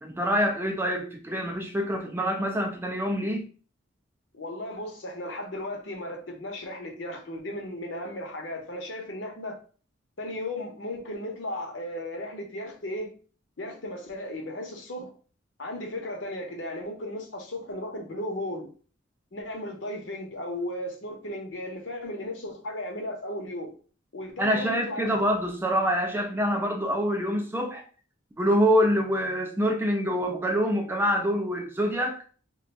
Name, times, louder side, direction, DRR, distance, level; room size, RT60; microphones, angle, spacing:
voice 1, 0.0-3.5 24.4-27.8 28.4-32.2, equal, 10° right, 0.4 m, -26 dB
voice 2, 4.3-9.6 10.2-13.1 13.6-15.1 15.6-18.7 19.3-23.7 24.1-25.1, left 1 dB, 65° left, 0.8 m, -35 dB
2.5 x 2.3 x 4.1 m
head